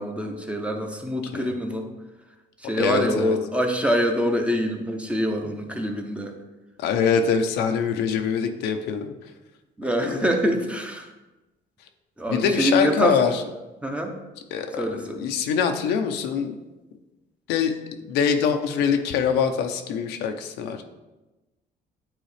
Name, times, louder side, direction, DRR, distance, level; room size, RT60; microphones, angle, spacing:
voice 1, 0.0-1.9 2.6-6.4 9.8-11.1 12.2-13.2 13.8-14.2 14.8-15.2, equal, 5° right, 3 dB, 0.8 m, -25 dB
voice 2, 2.8-3.4 6.8-9.1 10.0-10.3 12.3-13.4 14.5-16.6 17.5-17.7 18.1-20.8, left 6 dB, 85° left, 5 dB, 0.7 m, -24 dB
9.1 x 3.9 x 3.3 m, 1.1 s
cardioid pair, 110°, 17 cm